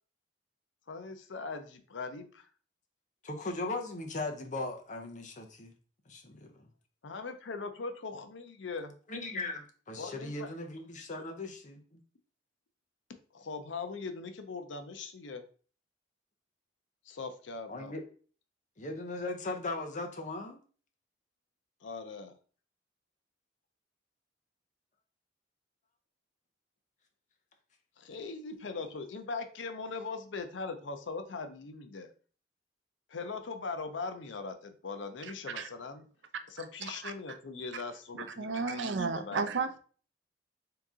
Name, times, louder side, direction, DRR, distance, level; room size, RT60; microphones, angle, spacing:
voice 1, 0.9-2.5 7.0-8.9 10.0-10.5 11.2-11.3 13.3-15.4 17.0-17.9 21.8-22.4 28.0-32.1 33.1-36.1 36.5-39.4, left 4 dB, 85° left, 8 dB, 0.6 m, -40 dB
voice 2, 3.2-5.7 6.1-6.7 9.1-12.0 17.7-18.1 18.8-20.6, left 2 dB, 45° left, 4 dB, 0.7 m, -38 dB
voice 3, 38.4-39.8, right 4 dB, 80° right, 9 dB, 0.5 m, -32 dB
3.7 x 2.9 x 3.6 m, 0.42 s
head